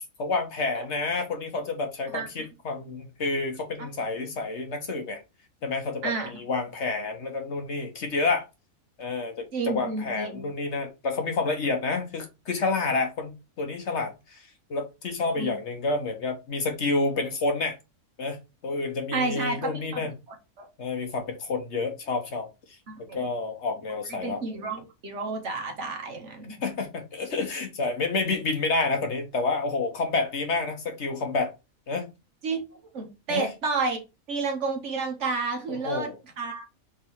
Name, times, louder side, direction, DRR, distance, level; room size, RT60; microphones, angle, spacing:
voice 1, 0.2-5.2 5.6-8.5 9.0-14.4 14.7-17.8 18.2-18.4 18.6-20.1 20.8-22.5 23.1-24.4 26.6-31.5 31.9-32.1 33.3-33.5 35.7-36.2, left 3 dB, 55° left, 1.1 m, -29 dB
voice 2, 9.5-10.4 15.4-15.5 19.1-20.0 20.6-20.7 22.9-23.3 24.1-26.6 32.4-34.0 34.3-36.1 36.4-36.6, right 4 dB, 60° right, 1.4 m, -31 dB
3.7 x 3.3 x 4.3 m
omnidirectional pair, 1.5 m